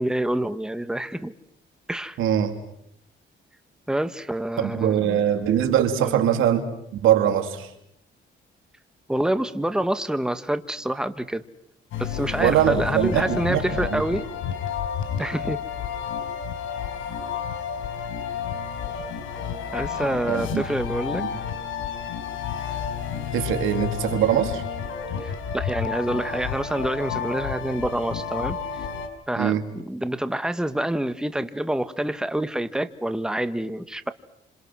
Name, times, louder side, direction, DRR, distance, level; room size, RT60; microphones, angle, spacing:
voice 1, 0.0-1.3 1.9-2.2 3.9-5.2 6.0-6.2 9.1-11.4 12.0-14.2 15.2-15.6 19.7-21.3 25.2-28.6 29.3-34.1, right 1 dB, 5° right, 10 dB, 1.6 m, -27 dB
voice 2, 2.2-2.6 4.6-6.6 7.0-7.7 12.4-14.0 20.3-20.6 23.3-24.6 29.4-29.6, right 10 dB, 90° right, 6 dB, 3.5 m, -22 dB
sound 1, 11.9-29.1, left 7 dB, 85° left, 5.2 m, -31 dB
29.5 x 27.5 x 6.3 m, 0.75 s
cardioid pair, 90°, 20 cm